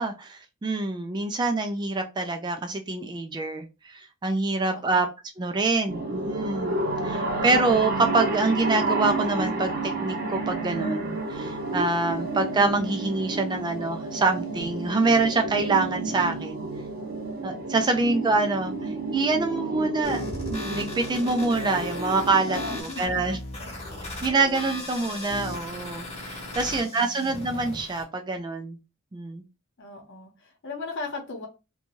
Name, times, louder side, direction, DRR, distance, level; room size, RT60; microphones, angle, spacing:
voice 1, 0.0-5.1 5.4-6.8 7.0-9.7 10.0-16.6 17.4-20.2 20.5-23.4 24.2-28.8 29.1-29.4, right 3 dB, 20° right, 5 dB, 0.3 m, -26 dB
voice 2, 4.6-5.1 22.4-23.2 23.6-23.7 26.6-27.3 29.8-31.5, left 3 dB, 60° left, 3 dB, 0.9 m, -38 dB
sound 1, 5.9-22.8, right 2 dB, 45° right, 0.7 m, -31 dB
sound 2, 20.0-28.0, left 2 dB, 30° left, 1.0 m, -37 dB
2.6 x 2.2 x 3.0 m, 0.28 s
head